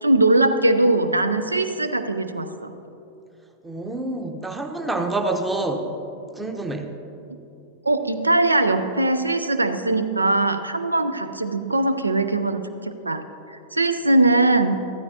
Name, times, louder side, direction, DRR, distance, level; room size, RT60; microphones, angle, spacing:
voice 1, 0.0-2.7 7.8-13.2 13.5-14.8, right 2 dB, 80° right, 11 dB, 0.4 m, -21 dB
voice 2, 3.6-5.9 6.3-6.9, right 2 dB, 10° right, 4 dB, 0.9 m, -27 dB
14.5 x 13.0 x 2.8 m, 2.9 s
figure-of-eight pair, 90°, 0 cm